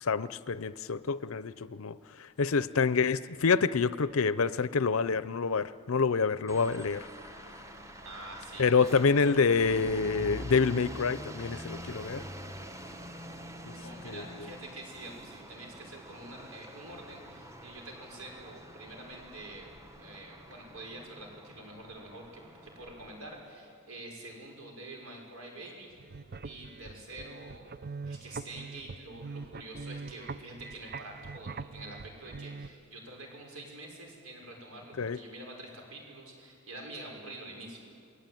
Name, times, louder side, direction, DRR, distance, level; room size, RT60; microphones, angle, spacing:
voice 1, 0.0-2.0 2.4-7.1 8.6-12.2 13.7-13.8 14.1-14.2 35.0-35.2, left 5 dB, 65° left, 15 dB, 0.6 m, -27 dB
sound 1, 6.5-23.4, equal, 15° right, 1.1 m, -46 dB
voice 2, 8.0-8.9 13.7-19.7 20.0-25.9 26.4-27.8 28.1-37.8, right 2 dB, 80° right, 1 dB, 6.1 m, -46 dB
sound 2, 25.9-32.7, right 4 dB, 45° right, 0.5 m, -43 dB
28.0 x 21.0 x 9.2 m, 2.4 s
head